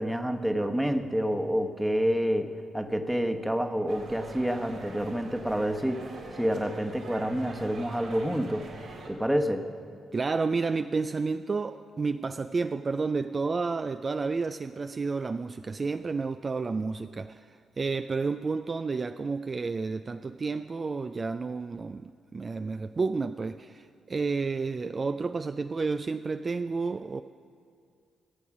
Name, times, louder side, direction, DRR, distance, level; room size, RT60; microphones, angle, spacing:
voice 1, 0.0-8.6 9.1-9.7, equal, 10° right, 6 dB, 1.1 m, -28 dB
sound 1, 3.9-9.1, right 2 dB, 70° right, 2.4 m, -43 dB
voice 2, 10.1-17.5 17.8-27.2, right 4 dB, 40° right, 9 dB, 0.3 m, -31 dB
14.5 x 8.4 x 6.0 m, 2.3 s
hypercardioid pair, 40°, 0 cm